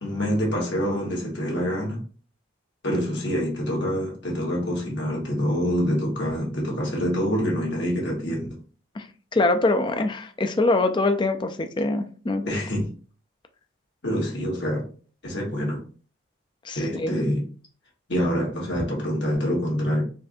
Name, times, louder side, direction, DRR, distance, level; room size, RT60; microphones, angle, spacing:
voice 1, 0.0-2.0 2.8-8.6 12.4-12.9 14.0-14.9 15.2-15.8 16.7-17.5 18.1-20.0, equal, 60° left, 1.6 m, -26 dB
voice 2, 9.3-12.5 16.7-17.1, left 2 dB, 25° left, 0.3 m, -23 dB
4.4 x 2.6 x 2.6 m
head